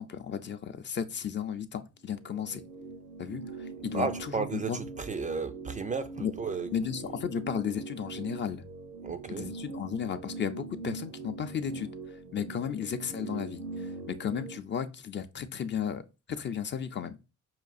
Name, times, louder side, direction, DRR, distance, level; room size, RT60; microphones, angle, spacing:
voice 1, 0.0-2.6 3.2-4.8 6.2-6.3 6.7-8.6 9.3-11.9 12.3-16.0 16.3-17.2, left 8 dB, 40° left, 0.5 m, -34 dB
sound 1, 2.1-14.6, right 3 dB, 80° right, 0.8 m, -42 dB
voice 2, 3.9-6.7 9.0-9.5, right 5 dB, 25° right, 0.4 m, -33 dB
5.6 x 2.4 x 2.4 m
cardioid pair, 90°, 30 cm